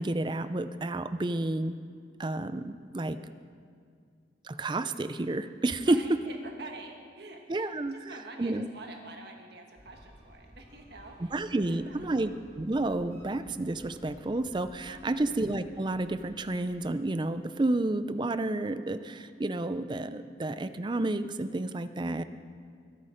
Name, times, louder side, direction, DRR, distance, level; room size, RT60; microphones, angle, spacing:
voice 1, 0.0-1.7 2.2-3.2 4.4-6.0 7.5-8.0 8.4-8.7 11.3-12.3 12.6-22.2, right 2 dB, 25° right, 12 dB, 0.4 m, -30 dB
voice 2, 5.8-12.2 14.9-15.3, right 3 dB, 60° right, 2 dB, 1.4 m, -47 dB
sound 1, 9.8-16.6, equal, 40° right, 3.7 m, -55 dB
21.5 x 8.4 x 5.1 m, 2.2 s
head